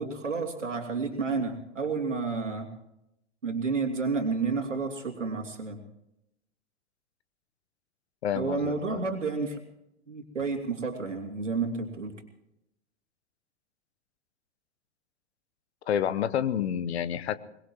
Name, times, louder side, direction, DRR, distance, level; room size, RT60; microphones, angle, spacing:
voice 1, 0.0-2.7 3.4-5.8 8.3-9.6 10.1-12.2, right 4 dB, 85° right, 4 dB, 2.9 m, -30 dB
voice 2, 8.2-9.0 15.9-17.4, left 9 dB, 60° left, 16 dB, 1.0 m, -29 dB
22.5 x 21.0 x 3.1 m, 0.83 s
figure-of-eight pair, 100°, 36 cm